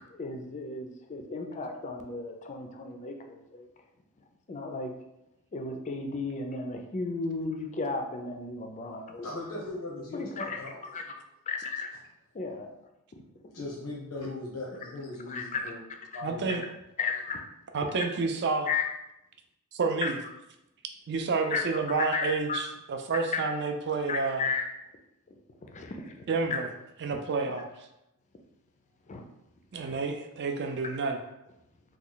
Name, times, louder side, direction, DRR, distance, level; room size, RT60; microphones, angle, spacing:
voice 1, 0.2-3.7 4.5-4.9 5.5-9.3 10.1-10.6 10.9-11.0 11.5-11.9 12.3-12.7 15.3-15.6 17.0-17.4 18.7-18.9 20.0-20.1 21.5-21.7 22.0-22.6 23.3-23.4 24.1-24.7 25.6-26.1 29.1-29.2, left 4 dB, 30° left, 4 dB, 0.4 m, -34 dB
voice 2, 9.2-10.8 13.5-15.8 16.1-16.6, left 2 dB, 90° left, -4 dB, 0.7 m, -39 dB
voice 3, 16.2-16.6 17.7-18.7 19.7-20.2 21.1-24.5 26.3-26.7 27.0-27.7 29.7-31.2, right 4 dB, 50° right, 5 dB, 0.4 m, -29 dB
3.0 x 2.3 x 3.8 m, 0.88 s
head